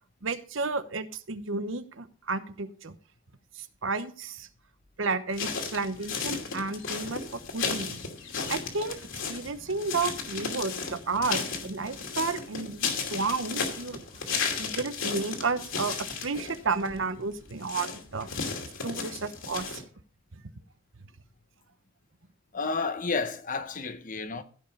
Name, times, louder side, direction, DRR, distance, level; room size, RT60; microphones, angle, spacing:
voice 1, 0.2-2.9 3.6-4.5 5.0-8.0 8.5-9.0 9.3-14.0 14.6-16.0 16.2-18.4 18.8-19.8, right 4 dB, 65° right, 0.9 m, -32 dB
sound 1, 5.3-19.8, left 5 dB, 65° left, 2.5 m, -34 dB
voice 2, 22.5-24.4, left 4 dB, 40° left, 0.9 m, -31 dB
15.5 x 5.7 x 5.4 m
head